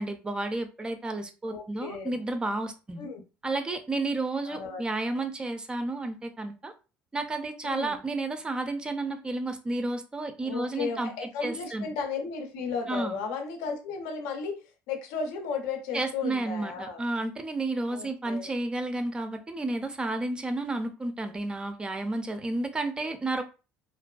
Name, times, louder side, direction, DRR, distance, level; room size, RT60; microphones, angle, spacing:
voice 1, 0.0-3.1 3.4-6.7 7.1-11.1 11.4-11.9 12.9-13.2 15.9-23.4, right 2 dB, 20° right, 0.4 m, -31 dB
voice 2, 1.5-2.2 3.0-3.2 4.4-4.8 5.1-5.2 7.6-8.0 10.4-17.0 17.9-18.5, left 5 dB, 85° left, 0.5 m, -34 dB
2.5 x 2.2 x 2.2 m
supercardioid pair, 95°, 5 cm